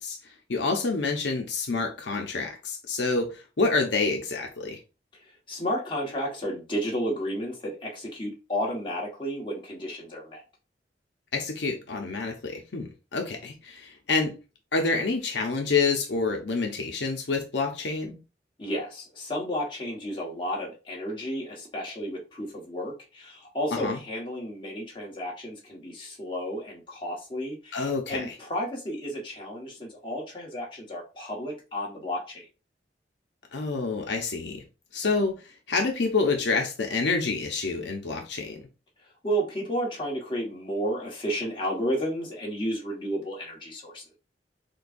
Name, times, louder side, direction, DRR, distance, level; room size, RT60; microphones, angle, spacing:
voice 1, 0.0-4.8 11.3-14.3 14.7-18.2 23.7-24.0 27.7-28.3 33.5-34.6 34.9-38.6, left 4 dB, 80° left, 0.7 m, -28 dB
voice 2, 5.2-10.4 18.6-32.5 39.2-44.2, equal, 30° left, 1.4 m, -32 dB
6.5 x 2.3 x 2.6 m
head